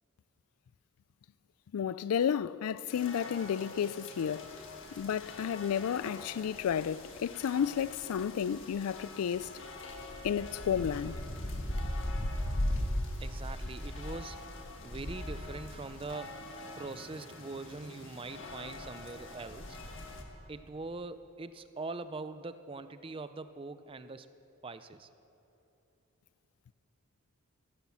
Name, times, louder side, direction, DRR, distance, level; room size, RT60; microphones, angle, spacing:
voice 1, 1.7-4.5 5.0-9.5 10.2-11.2, left 8 dB, 80° left, 0.3 m, -32 dB
sound 1, 2.9-20.2, left 1 dB, 60° left, 1.6 m, -40 dB
voice 2, 13.2-14.4 14.8-16.4 16.8-19.8 20.5-24.3 24.6-25.1, right 3 dB, 25° right, 0.5 m, -42 dB
14.5 x 11.5 x 7.3 m
head